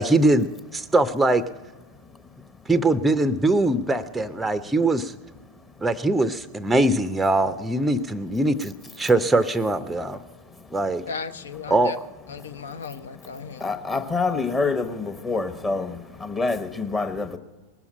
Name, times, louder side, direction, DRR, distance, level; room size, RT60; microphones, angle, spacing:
voice 1, 0.0-1.4 2.7-5.1 5.8-10.2 10.7-11.0 11.7-11.9, right 2 dB, 5° right, 0.6 m, -22 dB
voice 2, 11.1-12.0 12.3-13.7, left 5 dB, 65° left, 0.7 m, -36 dB
voice 3, 13.6-17.4, left 3 dB, 20° left, 1.0 m, -26 dB
20.0 x 7.1 x 8.9 m
figure-of-eight pair, 90°, 0 cm